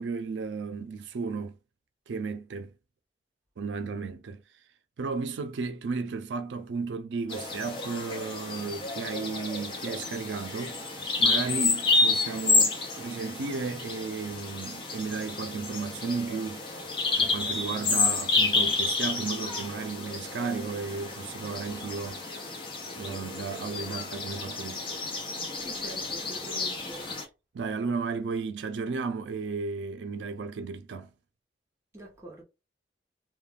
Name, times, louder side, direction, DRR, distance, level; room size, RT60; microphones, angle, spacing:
voice 1, 0.0-1.5 2.1-2.7 3.6-4.4 5.0-16.6 17.2-22.2 23.0-24.9 27.5-31.1, right 4 dB, 85° right, 0.4 m, -34 dB
Bird vocalization bird call bird song, 7.3-27.2, left 3 dB, 30° left, 0.5 m, -30 dB
voice 2, 25.5-27.1 31.9-32.4, right 1 dB, 15° right, 0.7 m, -45 dB
2.3 x 2.2 x 3.3 m
head